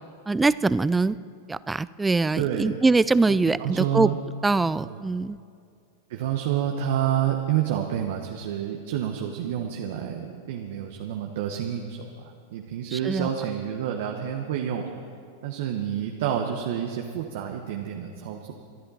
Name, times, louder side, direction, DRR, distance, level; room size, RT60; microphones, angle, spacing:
voice 1, 0.3-1.2 1.5-4.1 4.4-5.4 12.9-13.3, right 3 dB, 10° right, 18 dB, 0.3 m, -23 dB
voice 2, 2.3-2.7 3.3-4.2 4.8-5.0 6.1-14.8 15.4-18.5, right 10 dB, 65° right, 2 dB, 1.1 m, -29 dB
25.5 x 11.5 x 4.2 m, 2.3 s
hypercardioid pair, 100°, 0 cm